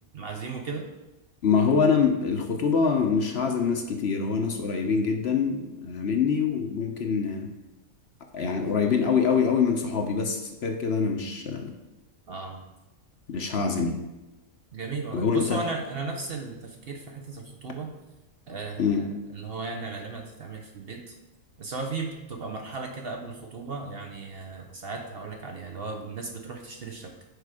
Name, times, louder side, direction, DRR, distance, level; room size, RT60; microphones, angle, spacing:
voice 1, 0.1-0.9 12.3-12.6 14.7-18.0 18.5-21.1 21.6-27.1, right 4 dB, 50° right, 2 dB, 0.8 m, -36 dB
voice 2, 1.4-7.5 8.3-11.7 13.3-14.0 15.1-15.6 18.8-19.0, left 6 dB, 55° left, 4 dB, 0.9 m, -25 dB
6.6 x 4.9 x 4.8 m, 0.99 s
omnidirectional pair, 1.4 m